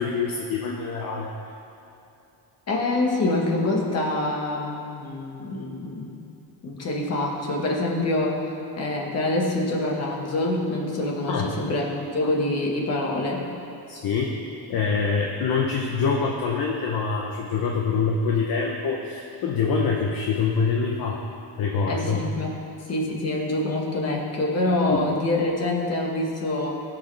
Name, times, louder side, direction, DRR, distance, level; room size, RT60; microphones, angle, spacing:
voice 1, 0.0-1.3 11.3-11.6 13.9-14.3 14.7-21.2 21.6-22.2 24.9-25.0, left 5 dB, 50° left, -1 dB, 0.9 m, -25 dB
voice 2, 2.7-6.2 6.6-8.4 8.8-13.4 21.8-22.5 22.9-26.8, left 2 dB, 35° left, -1 dB, 1.6 m, -25 dB
19.0 x 6.4 x 3.4 m, 2.7 s
cardioid pair, 165°, 44 cm